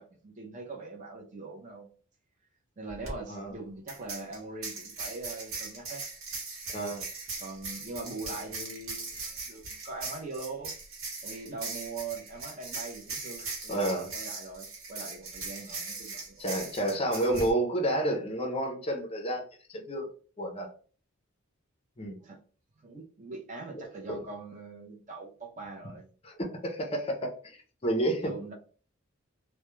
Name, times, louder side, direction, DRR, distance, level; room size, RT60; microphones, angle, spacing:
voice 1, 0.0-1.9 2.8-6.0 7.4-10.7 11.2-16.6 22.2-22.4 22.8-26.1 28.2-28.5, right 3 dB, 35° right, 0.5 m, -42 dB
sound 1, 2.9-3.1 3.9-17.5, right 3 dB, 70° right, 0.9 m, -39 dB
voice 2, 6.7-7.0 13.7-14.1 16.4-19.4 19.7-20.1 20.4-20.7 22.0-22.2 26.2-26.4 26.6-28.3, right 1 dB, 30° left, 0.5 m, -30 dB
2.2 x 2.1 x 3.0 m
head